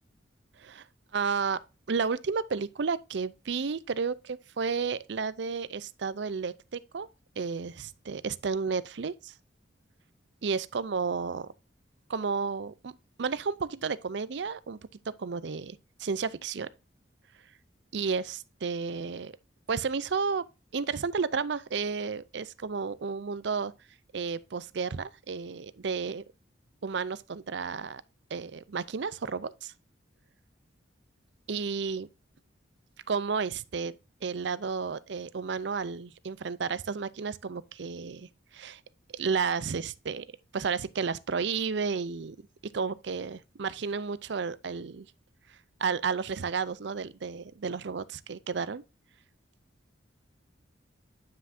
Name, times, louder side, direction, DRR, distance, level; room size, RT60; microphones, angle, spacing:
voice 1, 1.1-1.6 1.9-7.1 7.4-9.3 10.4-11.5 12.1-14.8 15.1-16.7 17.9-19.3 19.7-20.5 20.7-23.7 24.1-26.2 26.8-28.0 28.3-29.7 31.5-32.1 33.1-33.9 34.2-38.3 38.5-38.8 39.1-40.3 40.5-42.4 42.6-45.1 45.8-48.8, right 5 dB, 65° right, 0.5 m, -32 dB
9.6 x 5.9 x 2.6 m
head